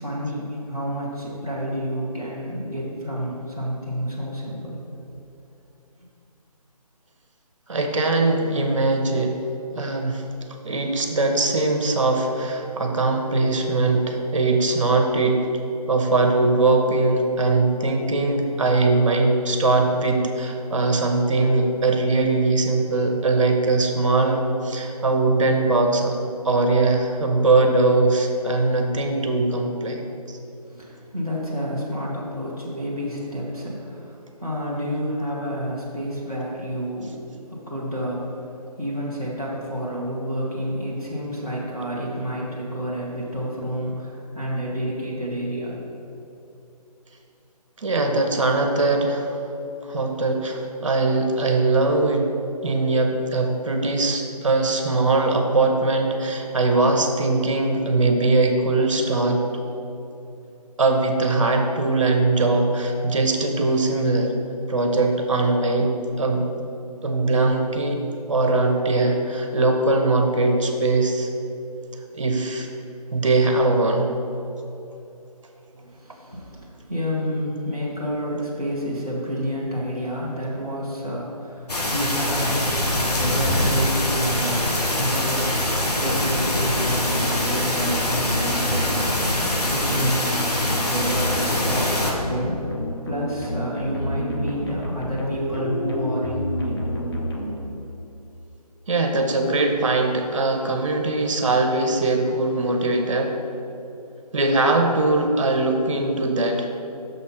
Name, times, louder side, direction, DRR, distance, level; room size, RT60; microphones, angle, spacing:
voice 1, 0.0-4.8 30.7-37.2 37.5-38.5 38.8-45.8 75.7-90.3 90.6-91.3 91.5-92.7 93.0-96.7, equal, 5° left, -12 dB, 0.4 m, -29 dB
voice 2, 7.7-9.4 9.8-10.3 10.6-15.5 15.9-26.2 26.4-30.0 30.3-30.4 47.8-49.4 49.8-52.3 52.6-59.5 60.8-64.3 64.7-66.5 67.0-68.0 68.3-71.3 72.1-72.7 73.1-74.1 98.9-103.4 104.3-106.7, right 2 dB, 50° right, 4 dB, 0.8 m, -21 dB
sound 1, 81.7-92.1, left 1 dB, 75° left, 1.2 m, -24 dB
sound 2, 86.2-98.0, equal, 40° left, 0.9 m, -30 dB
6.5 x 4.1 x 5.6 m, 2.9 s
figure-of-eight pair, 155°, 20 cm